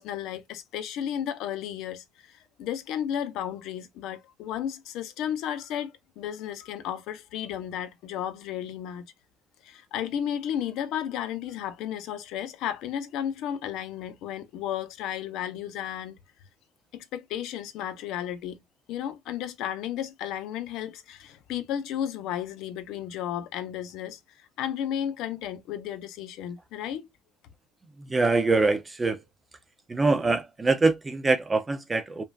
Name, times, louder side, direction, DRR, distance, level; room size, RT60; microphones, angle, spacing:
voice 1, 0.0-9.1 9.6-16.2 16.9-18.6 18.9-27.1, left 10 dB, 55° left, 0.7 m, -33 dB
voice 2, 28.1-29.2 29.9-32.2, right 3 dB, 10° right, 0.5 m, -24 dB
5.2 x 2.4 x 2.3 m
cardioid pair, 175°, 0 cm